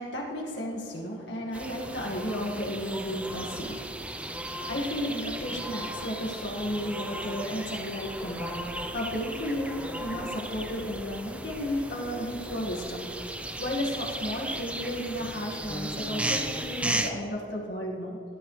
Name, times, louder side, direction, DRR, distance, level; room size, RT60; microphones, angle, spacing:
voice 1, 0.0-4.1 4.5-13.1 13.6-18.2, equal, 75° left, -2 dB, 2.0 m, -33 dB
sound 1, 1.5-17.1, right 1 dB, 5° right, 0.6 m, -36 dB
18.0 x 12.0 x 3.3 m, 2.7 s
head